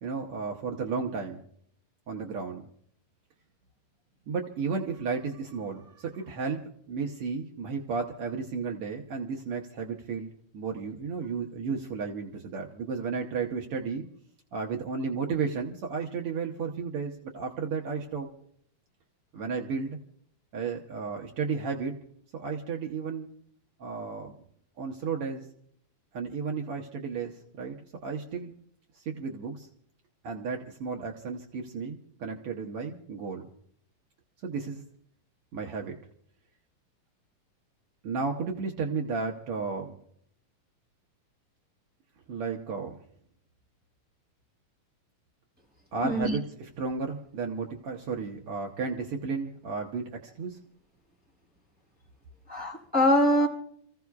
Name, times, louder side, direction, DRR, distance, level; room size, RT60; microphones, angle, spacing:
voice 1, 0.0-1.4 2.1-2.7 4.3-10.3 10.5-14.0 14.5-18.3 19.3-20.0 20.5-22.0 22.3-23.3 23.8-24.3 24.8-25.4 26.1-27.8 28.0-28.5 28.9-29.7 30.2-33.5 34.4-34.8 35.5-36.0 38.0-39.9 42.3-43.0 45.9-50.6, right 5 dB, 75° right, 1 dB, 1.3 m, -33 dB
voice 2, 46.0-46.4 52.5-53.5, equal, ahead, -3 dB, 5.6 m, -23 dB
29.5 x 15.5 x 2.4 m, 0.65 s
omnidirectional pair, 4.0 m